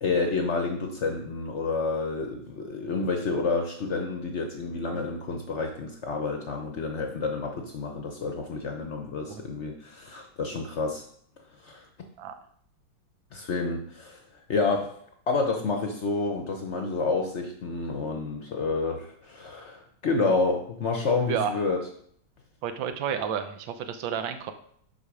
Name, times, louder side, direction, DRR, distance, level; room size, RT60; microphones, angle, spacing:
voice 1, 0.0-11.0 11.6-11.9 13.3-14.2 14.5-14.9 15.3-21.8, left 3 dB, 55° left, 3 dB, 0.8 m, -29 dB
voice 2, 21.3-21.6 22.6-24.5, right 7 dB, 85° right, 8 dB, 1.5 m, -31 dB
6.4 x 5.2 x 4.9 m, 0.63 s
omnidirectional pair, 2.0 m